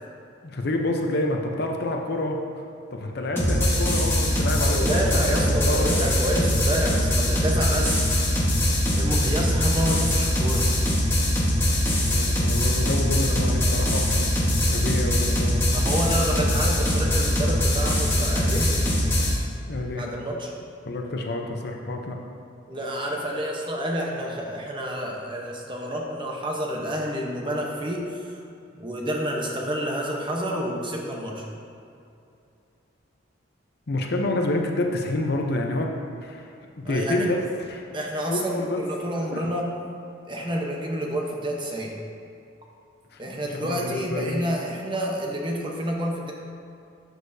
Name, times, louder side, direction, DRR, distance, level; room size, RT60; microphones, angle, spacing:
voice 1, 0.4-2.6 2.9-5.9 9.0-9.4 12.0-14.3 14.6-15.6 19.7-20.1 20.8-22.2 33.9-35.9 36.2-36.5 36.8-37.9 38.3-38.8 39.3-39.4 43.1-44.4, left 2 dB, 50° left, 2 dB, 0.7 m, -28 dB
sound 1, 3.4-19.4, equal, 10° left, 1.3 m, -22 dB
voice 2, 4.6-8.1 9.0-10.7 15.7-18.7 20.0-20.5 22.7-28.4 28.7-31.5 36.8-37.3 37.9-39.7 40.3-41.9 43.2-46.3, equal, 25° right, -1 dB, 0.9 m, -29 dB
12.5 x 6.5 x 2.7 m, 2.6 s
head